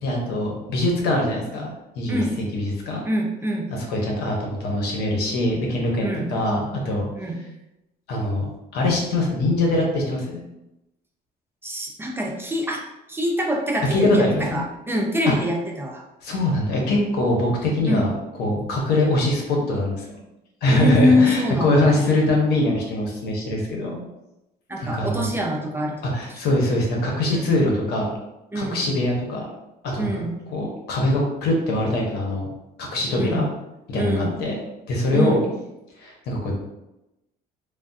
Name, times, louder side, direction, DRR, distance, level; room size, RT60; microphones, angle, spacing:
voice 1, 0.0-3.0 3.7-7.1 8.1-8.5 8.7-10.4 13.9-14.7 16.2-18.1 18.4-20.1 20.6-24.0 24.8-25.3 26.0-28.1 28.5-29.5 29.8-30.2 30.5-32.5 32.8-33.5 33.9-34.6 34.9-35.4 36.0-36.6, left 1 dB, 75° left, -1 dB, 0.9 m, -23 dB
voice 2, 3.1-3.7 6.0-6.3 7.2-7.4 11.6-16.0 17.9-18.0 20.7-22.2 24.7-26.0 27.3-27.6 28.5-28.9 30.0-30.4 33.1-33.5 33.9-34.3 35.1-35.5, left 1 dB, 15° right, 0 dB, 0.4 m, -24 dB
3.3 x 2.1 x 2.6 m, 0.93 s
cardioid pair, 110°, 17 cm